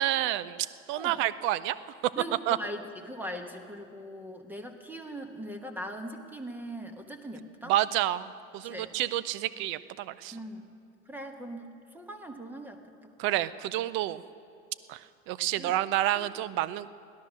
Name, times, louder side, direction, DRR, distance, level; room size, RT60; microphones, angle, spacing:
voice 1, 0.0-1.8 2.5-2.6 7.7-10.4 13.2-14.2 14.9-16.9, right 14 dB, 30° right, 16 dB, 0.5 m, -29 dB
voice 2, 2.1-7.7 8.6-8.9 10.3-10.7 11.1-13.1 15.6-15.8 16.1-16.3, equal, 5° right, 5 dB, 1.2 m, -41 dB
17.0 x 12.5 x 6.2 m, 2.6 s
hypercardioid pair, 115°, 39 cm